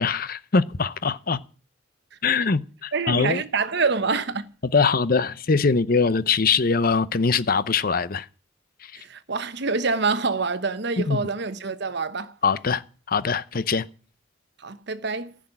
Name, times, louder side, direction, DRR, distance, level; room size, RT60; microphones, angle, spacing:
voice 1, 0.0-1.4 2.2-3.4 4.6-8.3 8.8-8.9 11.0-11.3 12.4-12.8 13.1-13.8, left 4 dB, 50° left, 0.7 m, -22 dB
voice 2, 2.9-4.5 9.0-12.3 14.6-15.4, right 4 dB, 60° right, 1.0 m, -26 dB
15.0 x 6.3 x 9.9 m
head